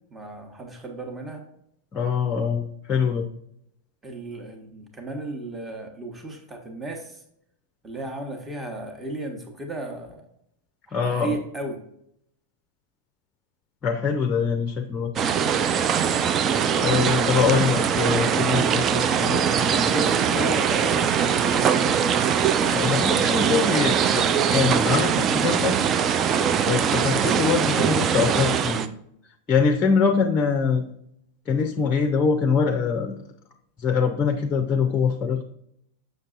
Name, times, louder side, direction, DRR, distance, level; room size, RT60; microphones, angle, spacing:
voice 1, 0.1-1.4 4.0-7.2 7.8-10.2 10.9-11.8 19.8-22.0 23.2-24.4, right 2 dB, 15° right, 3 dB, 1.2 m, -34 dB
voice 2, 1.9-3.3 10.9-11.3 13.8-15.1 16.8-20.1 22.7-24.2 24.5-25.8 26.7-28.9 29.5-30.9 31.5-33.2 33.8-35.4, left 6 dB, 25° left, 4 dB, 0.6 m, -23 dB
sound 1, 15.2-28.9, right 7 dB, 30° right, 0.4 m, -22 dB
6.6 x 6.6 x 2.5 m, 0.72 s
figure-of-eight pair, 90°, 0 cm